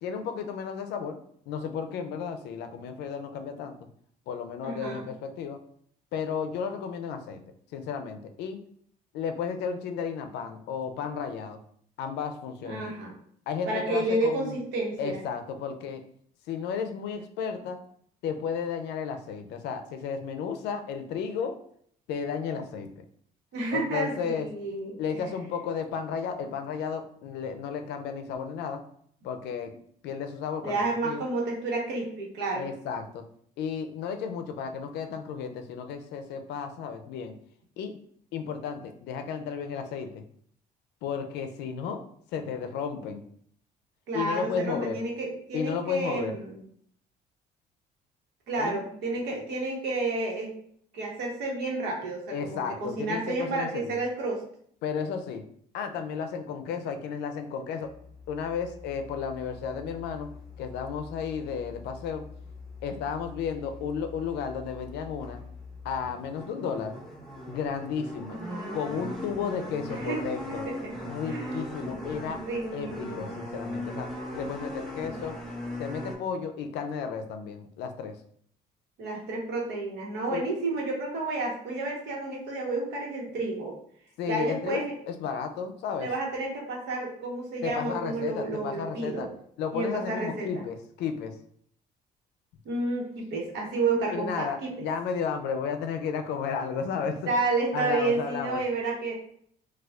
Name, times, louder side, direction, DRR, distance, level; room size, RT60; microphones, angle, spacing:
voice 1, 0.0-1.2 1.5-3.8 4.3-5.6 6.1-7.4 7.7-8.6 9.1-11.6 12.0-12.9 13.5-14.6 15.0-16.0 16.5-17.8 18.2-21.6 22.1-23.0 23.7-24.5 25.0-28.8 29.2-29.7 30.0-31.2 32.6-33.2 33.6-37.3 37.8-37.9 38.3-40.2 41.0-42.0 42.3-43.2 44.1-45.0 45.5-46.4 48.6-48.8 52.3-54.0 54.8-55.4 55.7-57.9 58.3-60.3 60.6-62.2 62.8-65.4 65.8-66.9 67.5-68.4 68.7-70.7 71.1-72.4 72.7-75.4 75.8-78.1 80.3-80.4 84.2-86.1 87.6-89.3 89.6-91.4 94.1-97.3 97.7-98.6, left 6 dB, 80° left, 7 dB, 0.5 m, -33 dB
voice 2, 4.6-5.0 12.6-13.1 13.7-15.2 23.5-25.3 30.6-32.7 44.1-46.6 48.5-50.5 50.9-54.4 68.3-69.0 69.9-70.2 70.5-70.7 71.3-71.6 72.4-73.4 79.0-83.7 84.3-84.9 86.0-89.3 89.7-90.6 92.6-94.7 97.3-99.1, right 2 dB, 80° right, -1 dB, 1.1 m, -31 dB
sound 1, 57.8-76.2, left 1 dB, ahead, 1.0 m, -40 dB
4.2 x 2.3 x 2.4 m, 0.63 s
cardioid pair, 110°, 17 cm